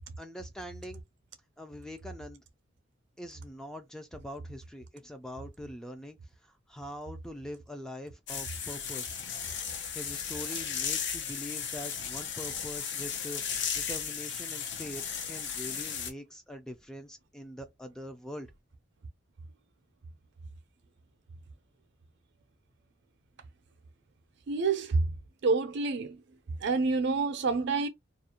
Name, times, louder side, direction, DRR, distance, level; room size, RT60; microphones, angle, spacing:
voice 1, 0.2-1.0 1.6-2.4 3.2-9.2 9.9-18.5, equal, 5° left, 0.3 m, -43 dB
sound 1, 8.3-16.1, left 7 dB, 65° left, 0.6 m, -35 dB
voice 2, 24.5-25.2 25.4-26.2 26.5-27.9, right 4 dB, 65° right, 0.5 m, -28 dB
2.4 x 2.1 x 2.8 m
head